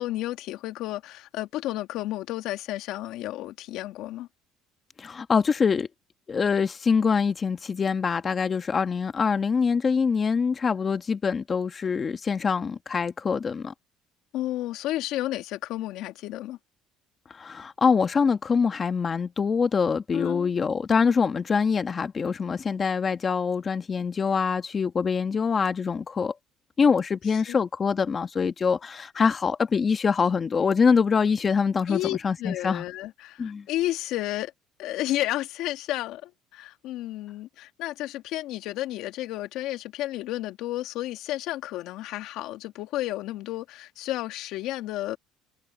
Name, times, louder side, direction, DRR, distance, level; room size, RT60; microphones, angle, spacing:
voice 1, 0.0-4.3 14.3-16.6 20.1-20.5 27.5-27.6 31.9-34.5 34.8-45.2, left 15 dB, 70° left, 2.1 m, -32 dB
voice 2, 5.0-5.9 6.3-13.7 17.3-26.3 26.8-32.8 33.4-33.6, left 5 dB, 30° left, 1.2 m, -24 dB
supercardioid pair, 100°, 0 cm